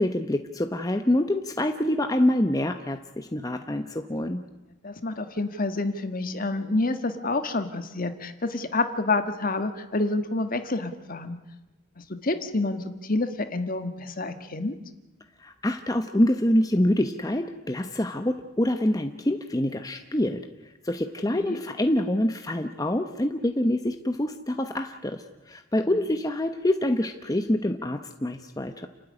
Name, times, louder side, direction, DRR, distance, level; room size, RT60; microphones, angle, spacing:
voice 1, 0.0-4.4 15.4-20.4 20.8-28.9, left 1 dB, 20° left, 6 dB, 0.9 m, -26 dB
voice 2, 4.8-11.4 12.2-14.8 21.3-21.6 25.8-26.0, left 2 dB, 45° left, 8 dB, 1.6 m, -28 dB
29.0 x 13.0 x 9.9 m, 1.1 s
head